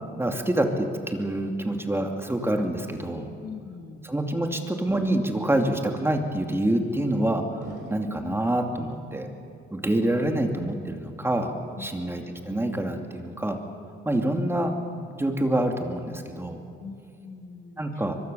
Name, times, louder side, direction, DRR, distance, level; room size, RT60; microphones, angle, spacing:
voice 1, 0.2-3.3 4.0-7.4 7.9-9.3 9.7-11.5 11.8-13.6 14.1-14.8 15.2-16.6 17.8-18.2, right 1 dB, 10° right, 4 dB, 2.6 m, -26 dB
voice 2, 3.4-4.0 11.8-12.1 16.8-18.0, left 5 dB, 50° left, 5 dB, 2.1 m, -43 dB
sound 1, 4.9-5.7 6.6-7.1 7.6-8.4 8.9-9.5 9.8-10.6 10.9-11.3 11.8-12.4, right 2 dB, 70° right, 4.7 m, -47 dB
24.5 x 21.5 x 7.0 m, 2.5 s
cardioid pair, 90°, 20 cm